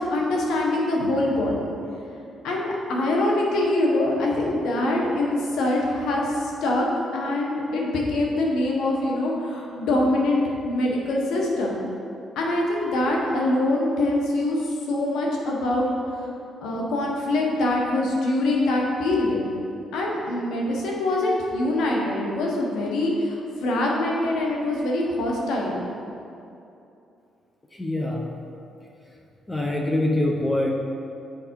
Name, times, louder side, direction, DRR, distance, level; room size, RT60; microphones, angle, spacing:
voice 1, 0.0-1.7 2.4-6.9 7.1-11.8 12.3-15.9 16.2-16.3 16.6-19.4 19.9-25.8, left 1 dB, 85° left, -1 dB, 1.3 m, -24 dB
voice 2, 27.8-28.3 29.5-30.7, left 1 dB, 20° left, 0 dB, 0.7 m, -24 dB
7.0 x 5.0 x 4.6 m, 2.7 s
cardioid pair, 90°, 0 cm